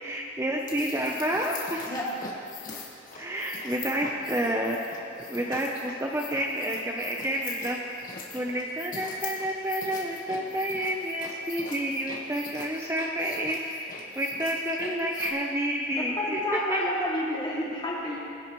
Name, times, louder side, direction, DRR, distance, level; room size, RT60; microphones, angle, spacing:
voice 1, 0.0-1.9 3.2-5.0 5.3-7.8 8.3-16.4 16.7-16.8, right 1 dB, 15° right, 0 dB, 0.7 m, -29 dB
sound 1, 0.5-15.3, left 4 dB, 45° left, 1.5 m, -42 dB
voice 2, 16.0-18.2, left 1 dB, 25° left, -5 dB, 2.5 m, -30 dB
21.0 x 10.0 x 3.1 m, 2.5 s
head